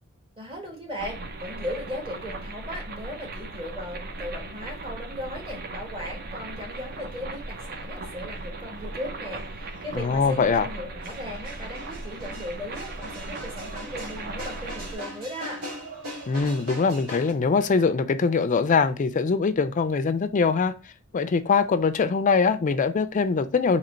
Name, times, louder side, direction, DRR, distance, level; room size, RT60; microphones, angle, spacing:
voice 1, 0.4-15.7, left 1 dB, 25° right, 1.4 m, -37 dB
sound 1, 1.0-15.0, right 2 dB, 45° right, 0.6 m, -38 dB
sound 2, 6.7-17.3, right 1 dB, 85° right, 1.8 m, -42 dB
voice 2, 9.9-10.7 16.3-20.7 21.1-23.8, left 5 dB, 35° left, 0.4 m, -22 dB
3.9 x 2.9 x 4.3 m
head